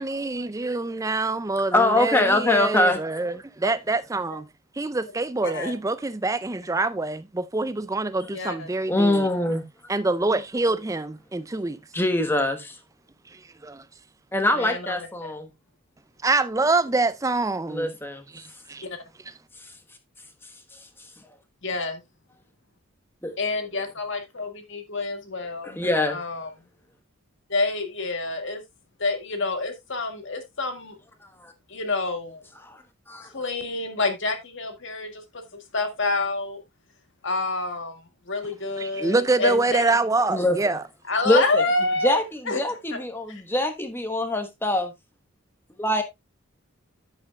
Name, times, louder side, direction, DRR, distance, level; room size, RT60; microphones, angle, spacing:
voice 1, 0.0-4.5 4.8-9.3 9.9-11.8 13.6-13.8 16.2-17.9 18.3-18.8 38.8-40.8, right 3 dB, 15° right, 0.4 m, -25 dB
voice 2, 1.7-3.0 8.9-9.6 11.9-12.7 14.3-15.5 17.7-18.2 23.2-23.3 25.6-26.2 31.4-31.5 32.7-32.8 33.1-33.3 40.3-40.6 41.2-41.6 42.0-44.9 45.8-46.0, left 1 dB, 10° left, 1.2 m, -23 dB
voice 3, 5.4-5.7 8.3-8.7 14.6-15.4 18.8-19.0 21.6-22.0 23.4-25.8 26.1-26.5 27.5-28.6 29.0-31.0 31.7-32.4 33.3-35.4 35.7-36.6 37.2-40.0 41.1-42.2 42.5-42.8 43.3-43.4, left 3 dB, 55° left, 1.9 m, -28 dB
10.0 x 8.4 x 2.3 m
head